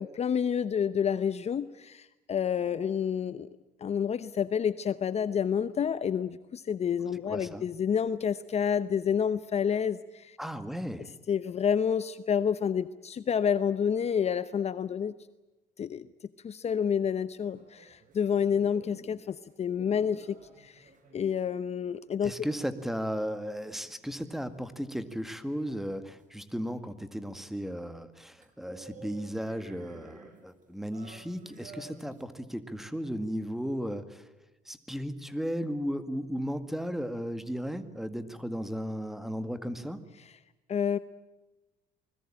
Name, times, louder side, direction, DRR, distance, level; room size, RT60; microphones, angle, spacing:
voice 1, 0.0-3.5 3.8-10.4 11.3-15.1 15.8-16.0 16.4-22.3 40.7-41.0, left 7 dB, 40° left, 14 dB, 0.8 m, -29 dB
voice 2, 7.3-7.6 10.4-11.1 22.2-34.3 34.7-40.0, equal, ahead, 11 dB, 2.0 m, -35 dB
sound 1, 17.4-18.6 20.1-21.7 26.2-26.3 28.4-32.3, right 4 dB, 50° right, 5.5 m, -52 dB
sound 2, 18.4-19.3 19.5-20.4 20.8-20.9 21.3-21.4 21.9-23.3 23.6-24.3, left 6 dB, 65° left, 4.9 m, -51 dB
28.5 x 20.5 x 8.8 m, 1.1 s
cardioid pair, 110°, 17 cm